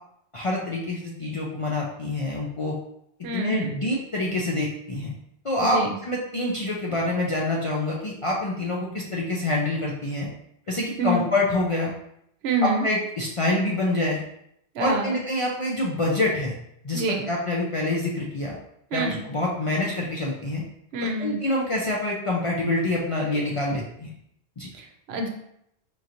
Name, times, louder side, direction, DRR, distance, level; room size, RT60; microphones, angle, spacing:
voice 1, 0.3-2.8 3.3-5.1 5.4-10.3 10.7-11.9 12.6-14.2 14.8-16.6 16.8-18.5 18.9-20.6 21.2-24.1 24.6-24.7, left 2 dB, 45° left, -3 dB, 0.4 m, -26 dB
voice 2, 3.2-3.7 5.6-6.0 11.0-11.2 12.4-12.8 14.7-15.2 16.9-17.3 18.9-19.2 20.9-21.4 24.7-25.3, right 2 dB, 75° right, 3 dB, 0.9 m, -27 dB
4.5 x 2.9 x 2.5 m, 0.75 s
omnidirectional pair, 1.1 m